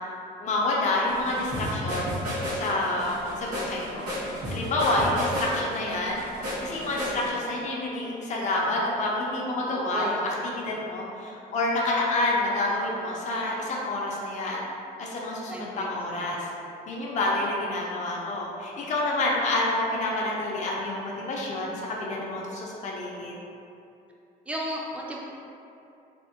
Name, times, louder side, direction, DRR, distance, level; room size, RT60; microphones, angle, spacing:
voice 1, 0.4-2.1 2.5-4.1 4.5-6.2 6.6-14.6 15.0-16.5 16.9-23.3, left 2 dB, 45° left, -3 dB, 0.6 m, -28 dB
sound 1, 1.1-7.3, equal, 75° right, 1.4 m, -32 dB
voice 2, 15.5-16.3 24.5-25.2, right 1 dB, 5° right, -3 dB, 0.4 m, -34 dB
3.4 x 2.1 x 2.7 m, 2.7 s
cardioid pair, 110°, 17 cm